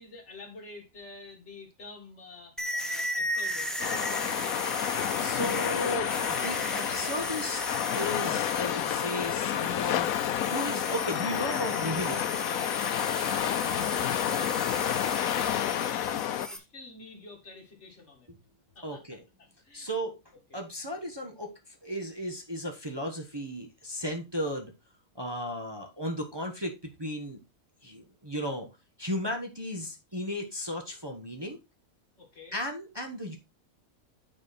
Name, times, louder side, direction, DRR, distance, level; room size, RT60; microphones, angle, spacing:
voice 1, 0.0-4.8 13.4-18.3 18.8-19.9 20.5-20.6 32.2-32.6, left 3 dB, 55° left, 2.2 m, -49 dB
sound 1, 2.6-16.6, equal, ahead, 0.9 m, -36 dB
sound 2, 3.8-16.5, left 11 dB, 85° left, 1.1 m, -30 dB
voice 2, 5.1-7.6 7.9-10.1 10.4-12.6 18.8-19.2 19.7-20.2 20.5-24.7 25.1-27.4 27.8-28.7 29.0-31.6 32.5-33.4, equal, 20° right, 1.2 m, -35 dB
9.6 x 4.3 x 4.2 m
omnidirectional pair, 1.4 m